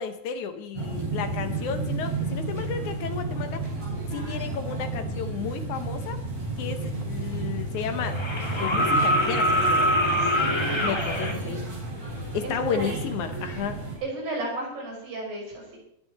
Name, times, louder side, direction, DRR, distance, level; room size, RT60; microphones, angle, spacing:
voice 1, 0.0-3.7 4.1-6.2 6.6-8.2 8.6-9.9 10.7-11.6 12.3-13.8, left 6 dB, 70° left, 8 dB, 2.3 m, -32 dB
sound 1, 0.7-14.0, right 2 dB, 50° right, 6.2 m, -32 dB
sound 2, 7.0-7.1 8.1-11.3 13.1-13.2, equal, 25° left, 0.5 m, -24 dB
voice 2, 10.2-11.6 12.4-13.0 14.0-15.8, right 2 dB, 80° right, -2 dB, 6.9 m, -35 dB
21.5 x 10.5 x 4.1 m, 0.71 s
omnidirectional pair, 3.9 m